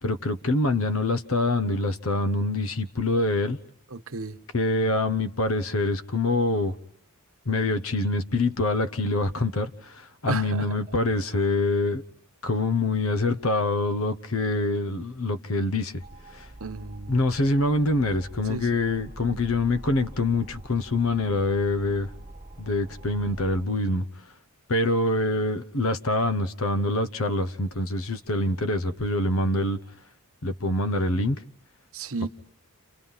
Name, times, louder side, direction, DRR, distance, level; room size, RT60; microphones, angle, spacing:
voice 1, 0.0-3.6 4.5-6.7 7.5-12.0 12.4-16.0 16.3-16.5 17.1-22.1 22.6-24.1 24.7-29.8 30.4-31.4, left 2 dB, 65° left, 1.1 m, -25 dB
voice 2, 3.9-4.4 10.3-10.8 16.6-17.2 18.5-18.7 31.9-32.3, right 3 dB, 65° right, 1.2 m, -33 dB
sound 1, 16.0-23.6, right 1 dB, 20° right, 1.3 m, -45 dB
29.5 x 29.5 x 5.7 m
head